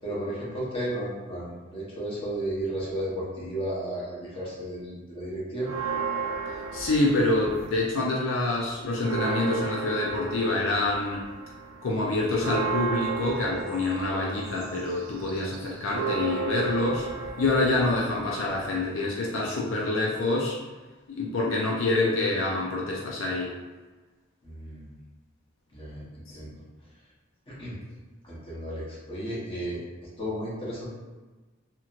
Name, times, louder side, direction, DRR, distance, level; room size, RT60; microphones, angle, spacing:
voice 1, 0.0-5.7 24.4-25.0 25.7-26.6 27.5-27.8 28.2-29.8 30.2-30.9, right 1 dB, 25° left, -7 dB, 0.9 m, -33 dB
sound 1, 5.6-8.0 8.3-18.8, right 5 dB, 75° right, 0.4 m, -34 dB
voice 2, 6.7-11.2 11.8-17.1 17.4-20.6 21.1-23.5 26.3-26.4, left 2 dB, 70° left, -3 dB, 0.4 m, -26 dB
2.9 x 2.8 x 2.4 m, 1.3 s
head